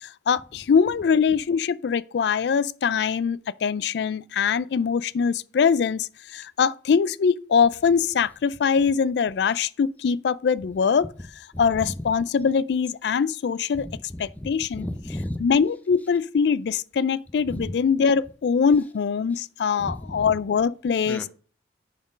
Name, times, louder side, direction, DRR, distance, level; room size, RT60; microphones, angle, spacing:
voice 1, 0.0-11.1 11.6-13.9 14.2-14.9 15.4-21.3, left 6 dB, 65° left, 0.3 m, -23 dB
voice 2, 13.7-15.5 17.5-17.7 19.8-20.4 21.1-21.3, left 1 dB, 10° left, 0.5 m, -34 dB
7.0 x 4.3 x 5.0 m
head